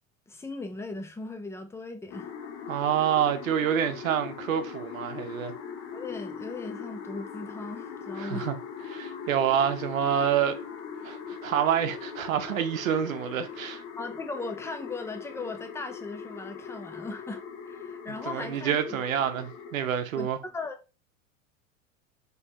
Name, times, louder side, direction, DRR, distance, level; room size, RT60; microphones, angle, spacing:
voice 1, 0.3-2.3 5.9-8.5 14.0-18.8 20.2-21.0, left 3 dB, 5° left, 0.6 m, -38 dB
sound 1, 2.1-19.7, left 6 dB, 45° left, 0.8 m, -40 dB
voice 2, 2.7-5.5 8.2-8.5 8.9-10.6 11.0-13.8 18.3-20.4, right 9 dB, 80° right, 0.8 m, -27 dB
4.1 x 3.0 x 2.9 m
hypercardioid pair, 90°, 40 cm